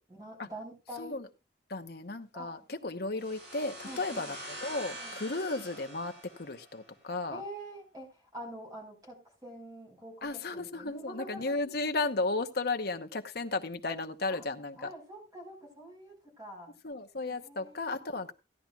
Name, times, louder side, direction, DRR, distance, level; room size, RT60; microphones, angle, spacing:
voice 1, 0.1-1.2 2.3-2.7 3.8-4.4 4.9-5.2 7.3-11.6 14.3-14.4 14.8-16.7 17.3-18.2, right 1 dB, 20° right, 4.6 m, -46 dB
voice 2, 1.7-4.4 4.6-7.4 10.2-14.9 16.8-18.3, left 3 dB, 60° left, 1.0 m, -34 dB
sound 1, 3.2-6.9, right 1 dB, 65° right, 7.7 m, -45 dB
16.0 x 10.5 x 2.4 m
head